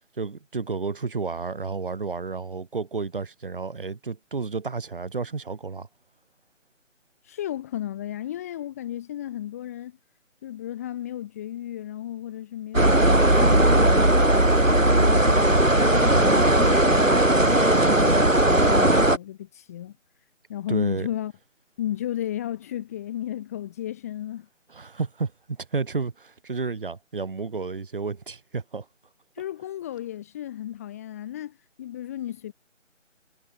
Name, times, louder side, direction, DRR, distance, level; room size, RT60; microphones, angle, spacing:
voice 1, 0.2-5.9 20.7-21.1 24.7-28.9, right 4 dB, 45° right, 7.8 m, -31 dB
voice 2, 7.2-10.0 10.4-13.0 13.4-14.1 14.7-20.0 20.5-21.3 21.8-24.5 29.4-32.5, left 12 dB, 10° left, 2.0 m, -34 dB
sound 1, 12.7-19.2, right 1 dB, 80° right, 5.2 m, -18 dB
figure-of-eight pair, 155°, 38 cm